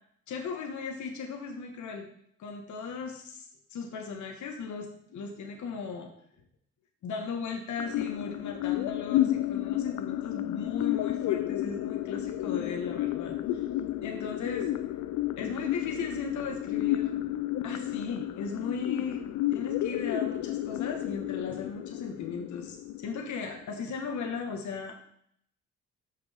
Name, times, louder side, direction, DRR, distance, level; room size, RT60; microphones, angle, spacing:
voice 1, 0.3-2.1 2.4-6.1 7.0-13.6 14.0-14.7 15.4-17.3 17.6-25.0, left 5 dB, 70° left, 2 dB, 1.5 m, -37 dB
sound 1, 7.8-23.8, left 14 dB, 90° left, 0.5 m, -32 dB
13.0 x 5.8 x 3.5 m, 0.67 s
cardioid pair, 90°, 30 cm